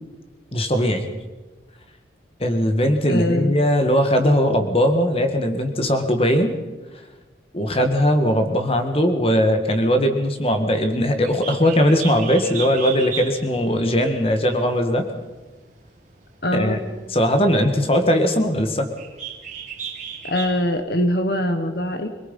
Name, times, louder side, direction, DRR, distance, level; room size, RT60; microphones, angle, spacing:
voice 1, 0.5-1.1 2.4-6.5 7.5-15.1 16.5-16.8 17.1-18.9, equal, 30° left, 7 dB, 1.9 m, -19 dB
voice 2, 3.0-3.5 16.4-16.8 20.2-22.1, left 1 dB, 55° left, 7 dB, 1.5 m, -22 dB
Bird, 11.2-20.8, right 7 dB, 40° right, 2.6 m, -37 dB
26.0 x 19.0 x 5.5 m, 1.3 s
head